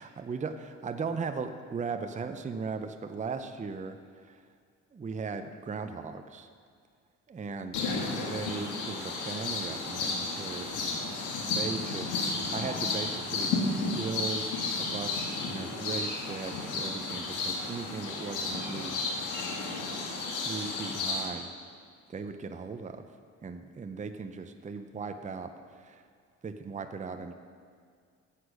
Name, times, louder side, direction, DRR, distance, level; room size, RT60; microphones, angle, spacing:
voice 1, 0.0-4.4 4.9-6.5 7.3-7.9 8.2-10.7 11.4-13.6 13.9-19.1 20.1-21.5 22.1-23.1 23.4-26.0 26.4-27.3, right 5 dB, 25° right, 7 dB, 0.6 m, -38 dB
sound 1, 7.7-21.3, left 3 dB, 90° left, 1.8 m, -33 dB
Bird vocalization bird call bird song, 14.4-15.6 15.9-16.4 18.5-18.9 19.2-19.8, left 2 dB, 35° left, 2.9 m, -45 dB
9.8 x 8.4 x 6.3 m, 2.1 s
cardioid pair, 90°, 30 cm